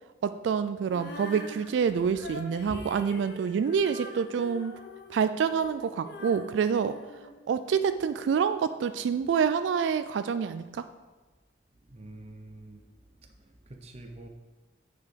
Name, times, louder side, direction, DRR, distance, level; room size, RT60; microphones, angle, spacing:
voice 1, 0.2-4.7 5.1-7.0 7.5-10.9, right 6 dB, 90° right, 11 dB, 0.3 m, -27 dB
Female singing, 0.9-7.9, left 2 dB, 60° left, 0.9 m, -44 dB
voice 2, 11.8-12.9 13.2-14.3, right 2 dB, 35° right, 4 dB, 0.8 m, -47 dB
8.2 x 4.8 x 5.1 m, 1.2 s
head